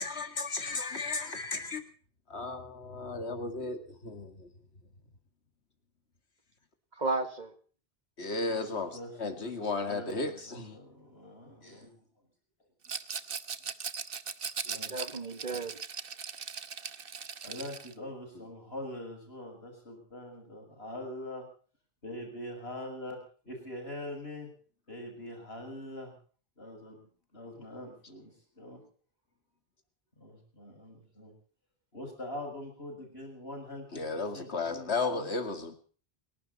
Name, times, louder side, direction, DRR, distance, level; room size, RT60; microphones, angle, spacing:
voice 1, 0.0-1.9 2.3-4.5 8.2-10.8 33.9-35.7, left 3 dB, 85° left, 8 dB, 2.4 m, -34 dB
voice 2, 6.9-7.6 14.7-15.8, right 3 dB, 45° right, 9 dB, 1.9 m, -34 dB
voice 3, 8.5-12.1 14.7-14.9 15.5-15.6 17.4-21.5 22.0-23.2 23.4-24.5 24.9-26.2 26.6-28.8 30.2-31.3 31.9-35.3, left 1 dB, 70° left, 2 dB, 7.3 m, -43 dB
Rattle, 12.8-17.9, right 6 dB, 60° right, 1.3 m, -39 dB
29.0 x 12.0 x 4.1 m, 0.43 s
omnidirectional pair, 1.1 m